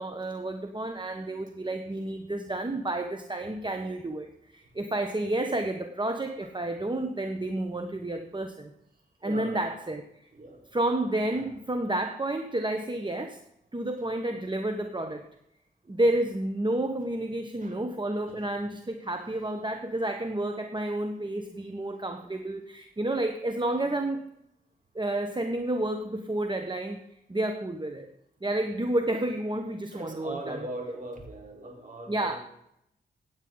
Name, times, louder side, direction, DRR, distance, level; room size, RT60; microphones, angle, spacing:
voice 1, 0.0-8.7 9.2-10.0 10.7-13.4 13.7-15.2 15.9-24.2 24.9-27.0 27.3-28.1 28.4-30.6 32.1-32.4, right 1 dB, 25° right, 6 dB, 1.3 m, -30 dB
voice 2, 9.2-9.6 10.3-10.7 11.3-11.5 14.0-14.1 17.6-17.8 18.3-18.6 20.1-20.2 29.9-32.4, right 1 dB, 45° right, 1 dB, 4.6 m, -40 dB
16.5 x 9.3 x 4.0 m, 0.79 s
cardioid pair, 55°, 18 cm